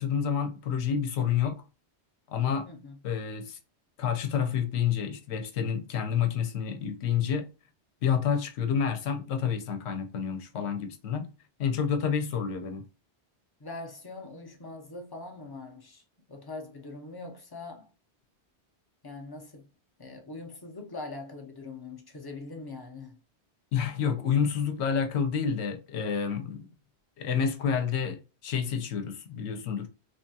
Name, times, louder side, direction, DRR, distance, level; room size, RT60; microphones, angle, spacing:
voice 1, 0.0-1.6 2.3-2.7 3.0-3.6 4.0-7.5 8.0-11.3 11.6-12.8 23.7-26.7 27.2-29.9, left 7 dB, 75° left, 0.9 m, -29 dB
voice 2, 2.6-3.0 13.6-16.0 16.3-17.9 19.0-19.7 20.0-23.2, left 3 dB, 30° left, 0.4 m, -42 dB
3.1 x 2.3 x 2.7 m
omnidirectional pair, 1.1 m